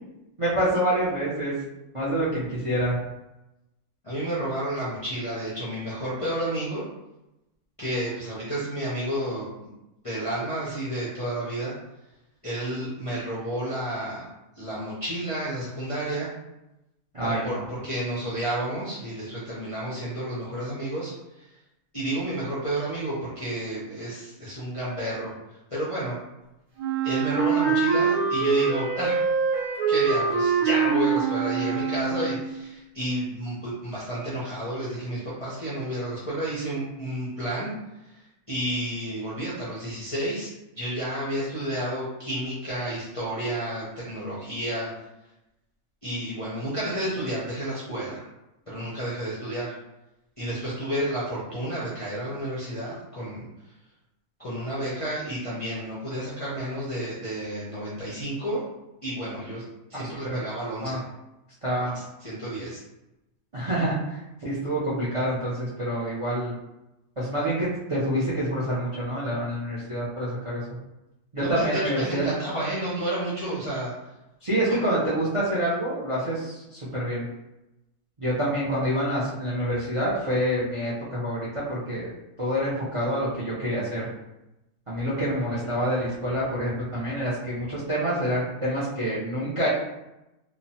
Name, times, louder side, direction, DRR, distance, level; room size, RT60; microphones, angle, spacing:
voice 1, 0.4-1.6 1.9-3.0 17.1-17.7 60.2-60.4 60.8-61.0 61.6-61.9 63.5-66.5 67.2-70.6 71.3-72.2 74.4-77.3 78.2-82.1 82.4-84.1 84.9-89.7, right 1 dB, 45° right, -8 dB, 0.4 m, -27 dB
voice 2, 4.0-6.8 7.8-9.5 10.0-11.7 12.4-14.3 14.6-16.3 17.2-21.1 21.9-25.3 25.7-26.2 27.0-29.2 29.9-37.7 38.5-40.5 40.8-44.9 46.0-48.2 48.7-49.7 50.4-53.4 54.4-58.6 59.0-59.6 59.9-61.0 61.8-61.9 62.2-62.8 71.4-71.7 71.9-73.9, right 1 dB, 45° left, -8 dB, 0.4 m, -31 dB
Wind instrument woodwind instrument, 26.8-32.6, right 5 dB, 75° right, 1.3 m, -24 dB
3.0 x 2.1 x 2.7 m, 0.93 s
omnidirectional pair, 1.6 m